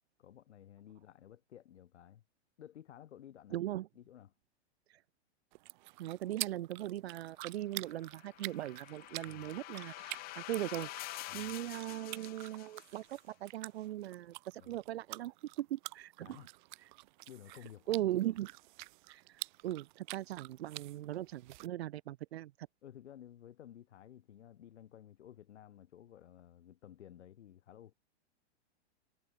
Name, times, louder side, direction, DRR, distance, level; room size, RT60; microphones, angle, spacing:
voice 1, 0.2-2.2 2.6-3.6 3.9-4.3 9.2-9.5 11.3-11.5 14.6-14.7 16.2-16.5 17.3-18.1 22.8-27.9, left 11 dB, 80° left, 3.0 m, -54 dB
voice 2, 3.5-3.9 6.0-10.9 11.3-16.4 17.9-18.5 19.1-22.5, right 14 dB, 65° right, 1.0 m, -39 dB
sound 1, 5.5-21.7, right 22 dB, 45° right, 2.3 m, -48 dB
sound 2, 7.9-13.2, left 21 dB, 25° left, 1.5 m, -47 dB
supercardioid pair, 160°, 34 cm